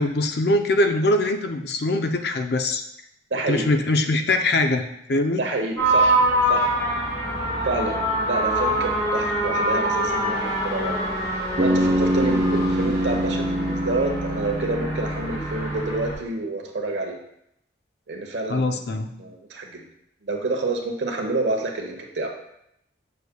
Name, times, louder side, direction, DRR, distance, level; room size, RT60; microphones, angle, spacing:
voice 1, 0.0-2.8 3.5-5.4 18.5-19.1, left 2 dB, 55° left, 6 dB, 0.5 m, -22 dB
voice 2, 3.3-3.7 5.4-6.2 6.5-6.8 7.6-11.0 11.3-17.2 18.1-19.8 20.2-22.3, right 2 dB, 70° right, 2 dB, 1.0 m, -28 dB
sound 1, 5.8-16.1, right 1 dB, 15° left, 2.3 m, -25 dB
Bass guitar, 11.6-15.6, equal, 35° right, 0.6 m, -24 dB
6.7 x 6.5 x 2.2 m, 0.77 s
head